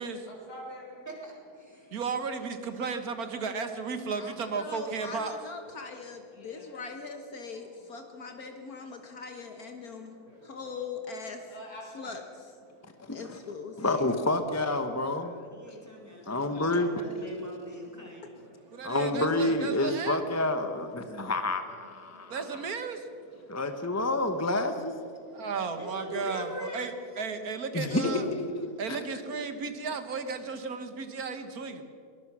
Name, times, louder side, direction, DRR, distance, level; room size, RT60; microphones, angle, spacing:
voice 1, 0.3-1.0 5.6-5.7 6.3-6.8 7.5-7.7 10.3-10.8 11.5-12.2 18.4-18.9 20.8-21.8 22.1-22.7, equal, 85° left, -2 dB, 6.3 m, -49 dB
voice 2, 1.1-2.0 15.1-18.3 25.8-26.8, left 1 dB, 10° right, -2 dB, 4.3 m, -42 dB
voice 3, 1.9-5.4 18.7-20.2 22.3-23.0 25.3-28.3 28.8-31.8, right 5 dB, 65° right, 8 dB, 1.7 m, -34 dB
voice 4, 4.2-10.2 10.4-11.5 11.9-12.5 13.1-14.1 27.8-28.4, left 4 dB, 65° left, 5 dB, 1.7 m, -41 dB
voice 5, 13.1-13.4 13.8-15.3 16.3-16.9 18.8-22.4 23.5-24.9 27.7-29.0, left 2 dB, 15° left, 7 dB, 0.8 m, -29 dB
22.5 x 19.5 x 6.2 m, 2.5 s
omnidirectional pair, 1.8 m